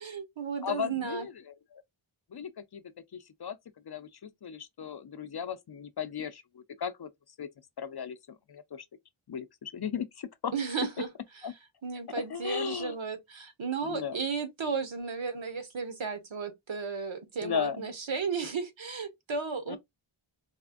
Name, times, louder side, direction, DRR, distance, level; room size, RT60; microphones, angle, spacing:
voice 1, 0.0-1.3 10.5-11.1 11.8-19.8, right 5 dB, 65° right, 1.0 m, -34 dB
voice 2, 0.6-1.8 2.3-2.8 3.1-3.6 3.9-7.1 7.4-7.5 7.8-8.2 8.5-8.9 9.3-10.5 11.4-11.5 12.3-13.0 13.8-14.2 17.4-17.8 19.7-19.8, left 7 dB, 55° left, 0.5 m, -36 dB
4.1 x 2.4 x 2.3 m
wide cardioid pair, 65°, 49 cm